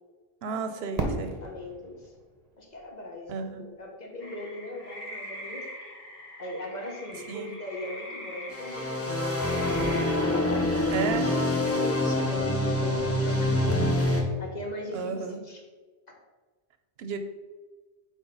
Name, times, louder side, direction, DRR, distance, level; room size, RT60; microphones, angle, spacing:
voice 1, 0.4-1.3 3.3-3.7 7.3-7.5 10.9-11.3 14.9-15.4 17.0-17.2, right 5 dB, 75° right, 8 dB, 0.9 m, -32 dB
Fireworks, 1.0-3.8, right 2 dB, 40° right, 0.9 m, -36 dB
voice 2, 1.4-2.1 2.6-5.7 6.4-9.7 10.2-11.0 11.8-13.7 14.4-15.6, left 1 dB, 45° left, 0 dB, 1.2 m, -39 dB
sound 1, 4.2-10.0, left 1 dB, 60° left, 1.9 m, -43 dB
sound 2, 8.5-14.2, left 1 dB, 15° left, 0.7 m, -26 dB
4.7 x 4.2 x 5.5 m, 1.4 s
omnidirectional pair, 1.1 m